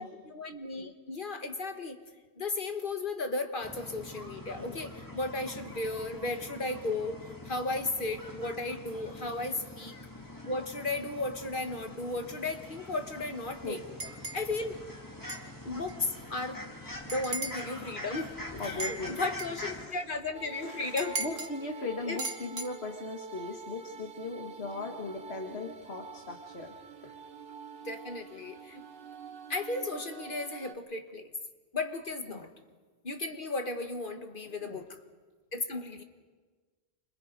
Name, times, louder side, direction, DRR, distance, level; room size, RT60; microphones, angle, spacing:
voice 1, 0.0-2.0 2.4-7.2 7.5-10.0 10.5-13.8 14.3-14.7 15.7-16.6 17.1-21.4 22.0-22.2 27.8-28.8 29.5-31.3 31.7-32.5 33.0-35.0 35.5-36.0, left 2 dB, 50° left, 6 dB, 1.8 m, -35 dB
sound 1, 3.6-19.9, left 1 dB, 20° left, 2.2 m, -44 dB
voice 2, 13.6-14.4 18.5-19.2 19.8-19.9 20.5-26.7 27.0-27.1 32.3-32.5 34.6-34.8, left 3 dB, 75° left, 2 dB, 2.2 m, -39 dB
sound 2, 14.0-14.5 15.3-15.4 15.9-16.0 17.1-17.6 18.8-19.6 21.0-21.5 22.2-22.7, right 3 dB, 90° right, 1.7 m, -37 dB
sound 3, 20.3-30.8, right 6 dB, 55° right, 1.3 m, -47 dB
28.5 x 26.0 x 5.3 m, 1.4 s
omnidirectional pair, 1.1 m